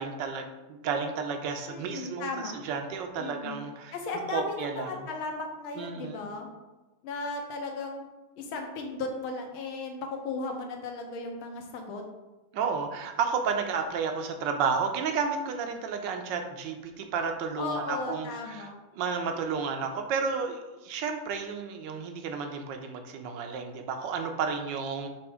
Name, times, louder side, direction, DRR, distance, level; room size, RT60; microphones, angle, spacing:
voice 1, 0.0-3.9 4.3-4.9 5.8-6.2 12.5-18.7 18.9-25.1, right 5 dB, 70° right, 5 dB, 1.2 m, -32 dB
voice 2, 1.7-2.6 3.2-3.6 3.9-6.5 7.0-8.1 8.4-12.0 17.6-18.8, left 3 dB, 80° left, 3 dB, 1.6 m, -36 dB
6.2 x 3.5 x 4.8 m, 1.1 s
omnidirectional pair, 2.3 m